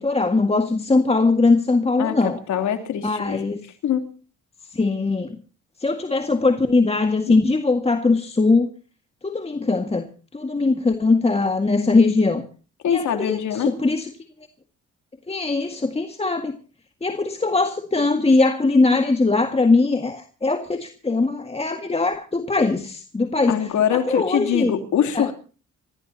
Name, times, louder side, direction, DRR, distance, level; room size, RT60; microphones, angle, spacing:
voice 1, 0.0-2.4 3.0-3.6 4.7-5.4 5.8-8.7 9.2-12.4 12.9-14.1 15.3-16.6 17.0-24.7 25.2-25.3, left 3 dB, 20° left, 1.8 m, -21 dB
voice 2, 2.0-3.4 3.8-4.1 7.3-7.4 12.8-13.7 23.5-25.3, left 9 dB, 70° left, 3.2 m, -23 dB
27.0 x 16.0 x 2.8 m
cardioid pair, 90°, 30 cm